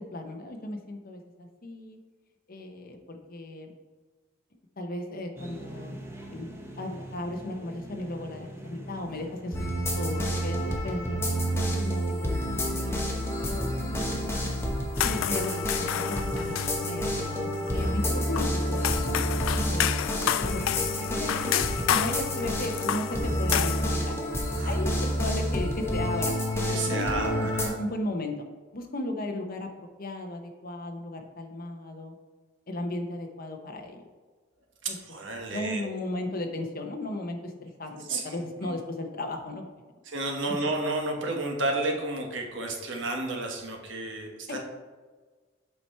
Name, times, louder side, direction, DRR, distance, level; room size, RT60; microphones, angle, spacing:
voice 1, 0.1-2.0 2.5-3.7 4.8-9.7 9.9-11.3 11.7-13.7 14.0-14.4 15.0-15.5 16.1-17.1 17.6-19.2 19.7-19.9 20.4-21.6 21.9-24.1 24.6-26.3 26.9-28.3 28.7-29.7 30.0-32.1 32.7-34.0 34.9-35.0 35.5-39.7 44.5-44.6, left 1 dB, 50° left, 4 dB, 0.9 m, -35 dB
sound 1, 5.4-11.6, right 1 dB, 15° right, 0.9 m, -43 dB
sound 2, 9.5-27.7, equal, 15° left, 1.1 m, -29 dB
sound 3, 15.0-23.9, left 10 dB, 90° left, 0.3 m, -31 dB
voice 2, 26.6-27.8 34.8-35.9 38.1-38.3 38.6-38.7 40.0-44.6, right 2 dB, 65° right, 2 dB, 1.3 m, -32 dB
7.7 x 4.6 x 4.3 m, 1.4 s
head